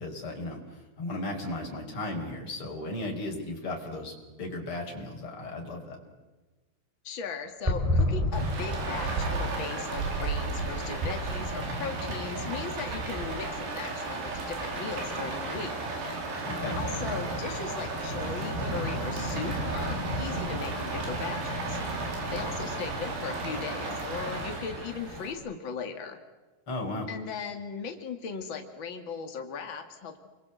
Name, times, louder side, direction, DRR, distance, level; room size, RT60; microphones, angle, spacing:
voice 1, 0.0-6.0 16.4-16.8 26.7-27.1, left 2 dB, 25° left, 1 dB, 5.6 m, -35 dB
voice 2, 7.0-15.7 16.7-21.8 22.3-26.2 27.1-30.2, left 5 dB, 75° left, 5 dB, 1.1 m, -38 dB
sound 1, 7.6-11.4 11.7-11.8 12.0-12.1, left 1 dB, 5° right, 4.0 m, -30 dB
Rain, 8.3-25.3, right 2 dB, 70° right, 6.8 m, -33 dB
30.0 x 23.5 x 8.2 m, 1.2 s
omnidirectional pair, 5.6 m